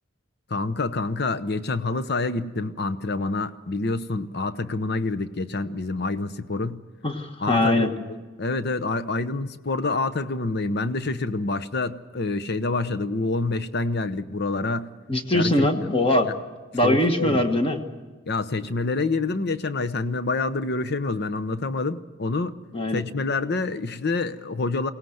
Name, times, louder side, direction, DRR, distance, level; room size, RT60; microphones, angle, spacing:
voice 1, 0.5-6.8 7.4-14.9 15.3-15.7 16.8-17.4 18.3-22.6 22.9-24.9, left 3 dB, 50° left, 13 dB, 0.8 m, -27 dB
voice 2, 7.0-7.9 15.1-16.3 16.7-17.8 22.7-23.0, left 1 dB, 25° left, 5 dB, 1.4 m, -22 dB
23.0 x 18.0 x 7.9 m, 1.3 s
head